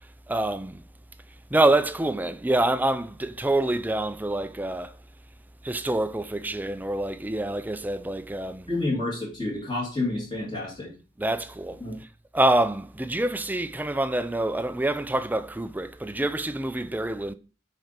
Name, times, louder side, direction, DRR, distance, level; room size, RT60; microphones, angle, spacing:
voice 1, 0.3-0.8 1.5-4.9 5.6-8.7 11.2-11.8 12.3-17.3, right 1 dB, 10° right, 0.4 m, -26 dB
voice 2, 8.7-10.9 11.8-12.0, left 2 dB, 25° left, 2.4 m, -29 dB
6.2 x 4.2 x 5.2 m
head